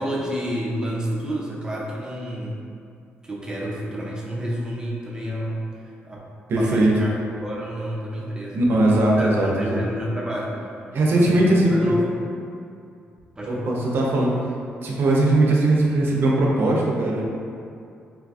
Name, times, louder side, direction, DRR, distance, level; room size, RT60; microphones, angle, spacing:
voice 1, 0.0-2.6 3.2-6.3 6.6-8.8 9.2-10.9 11.1-12.2 13.4-13.8, equal, 20° right, -4 dB, 0.6 m, -30 dB
voice 2, 6.5-6.9 8.5-9.8 10.9-12.0 13.5-14.3 14.8-17.2, right 1 dB, 65° right, -3 dB, 0.6 m, -19 dB
3.9 x 2.5 x 2.3 m, 2.4 s
cardioid pair, 85°, 4 cm